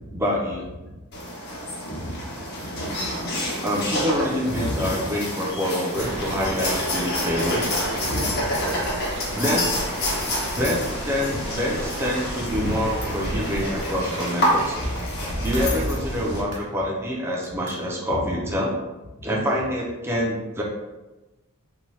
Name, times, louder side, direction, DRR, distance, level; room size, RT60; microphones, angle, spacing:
voice 1, 0.1-0.7 3.6-7.7 9.3-9.8 10.6-10.8 11.1-14.8 15.4-18.7 19.2-20.6, equal, 10° right, -4 dB, 0.4 m, -26 dB
sound 1, 1.1-16.4, left 1 dB, 50° left, 0.6 m, -28 dB
voice 2, 1.8-2.9 4.5-4.9 6.3-6.4 8.1-8.5 10.1-10.6 11.3-11.4 12.6-13.1 16.1-16.3 18.1-18.4 19.2-19.3, left 1 dB, 70° left, -9 dB, 0.9 m, -33 dB
sound 2, 4.0-4.3 5.1-8.4 13.6-16.0 16.3-16.7 17.4-17.8, right 1 dB, 85° right, 0.8 m, -40 dB
sound 3, 6.0-13.9, right 1 dB, 50° right, 0.7 m, -33 dB
2.8 x 2.2 x 3.0 m, 1.1 s
head